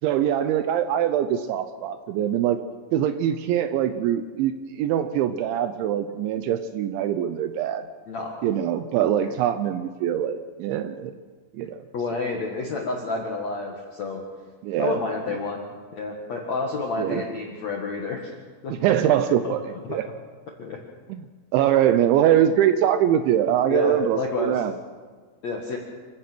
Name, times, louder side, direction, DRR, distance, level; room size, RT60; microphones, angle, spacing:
voice 1, 0.0-2.6 2.9-7.8 8.4-11.2 11.5-11.8 14.6-15.0 17.0-17.2 18.8-19.6 19.9-20.0 21.1-21.2 21.5-24.7, right 10 dB, 80° right, 10 dB, 2.8 m, -23 dB
voice 2, 8.1-8.5 9.2-9.3 11.9-14.2 14.8-15.6 15.9-18.3 18.6-18.7 19.4-19.5 19.8-20.0 20.6-20.8 23.7-24.6 25.4-25.8, left 3 dB, 65° left, 0 dB, 1.7 m, -29 dB
27.0 x 16.0 x 6.2 m, 1.5 s
omnidirectional pair, 5.9 m